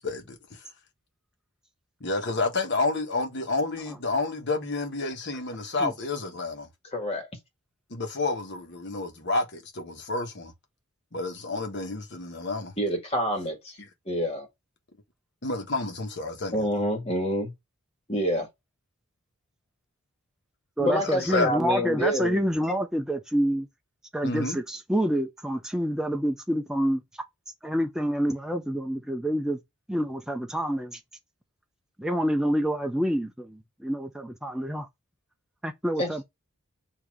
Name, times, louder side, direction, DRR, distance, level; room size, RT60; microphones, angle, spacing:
voice 1, 0.0-0.6 2.0-6.7 7.9-10.5 11.1-12.7 13.8-13.9 15.4-16.7 21.0-21.5 24.2-24.6, left 3 dB, 50° left, 1.4 m, -30 dB
voice 2, 6.9-7.3 12.8-13.8 14.1-14.5 16.5-17.5 18.1-18.5 20.8-22.4 36.0-36.1, equal, 25° left, 1.9 m, -27 dB
voice 3, 20.8-23.7 24.1-27.0 27.6-29.6 29.9-31.0 32.0-34.9 35.6-36.2, equal, 5° right, 0.6 m, -27 dB
7.1 x 2.9 x 4.9 m
head